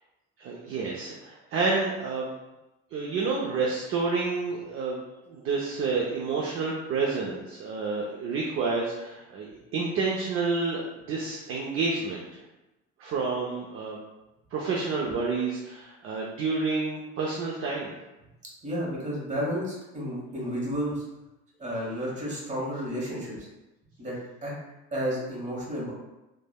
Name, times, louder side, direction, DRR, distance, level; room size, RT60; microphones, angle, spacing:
voice 1, 0.4-2.3 2.9-5.0 5.3-12.2 13.0-14.0 14.5-17.9, right 4 dB, 45° right, -3 dB, 0.5 m, -29 dB
voice 2, 18.6-21.0 21.6-23.5 24.0-24.1 24.4-24.5 24.9-25.9, equal, 25° right, -5 dB, 1.1 m, -31 dB
3.2 x 2.1 x 2.2 m, 0.99 s
cardioid pair, 105°, 30 cm